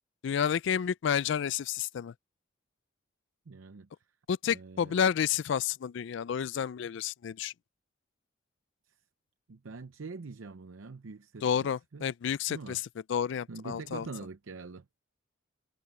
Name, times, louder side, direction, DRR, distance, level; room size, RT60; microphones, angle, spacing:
voice 1, 0.2-2.1 4.3-7.5 11.4-12.8 13.1-14.1, left 8 dB, 60° left, 0.3 m, -30 dB
voice 2, 3.5-3.9 4.5-5.0 8.9-9.0 9.5-12.1 12.5-12.8 13.5-14.9, right 4 dB, 85° right, 0.6 m, -44 dB
head